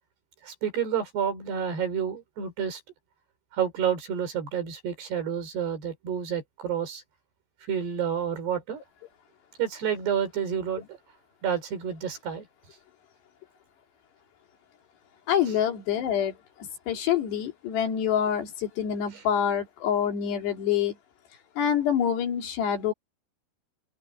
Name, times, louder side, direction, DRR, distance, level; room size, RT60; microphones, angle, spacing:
voice 1, 0.4-2.8 3.5-7.0 7.7-8.8 9.6-11.0 11.4-12.5, right 8 dB, 65° right, 6.4 m, -29 dB
voice 2, 15.3-16.4 16.9-21.0 21.6-22.9, left 9 dB, 70° left, 4.9 m, -26 dB
open air
omnidirectional pair, 5.1 m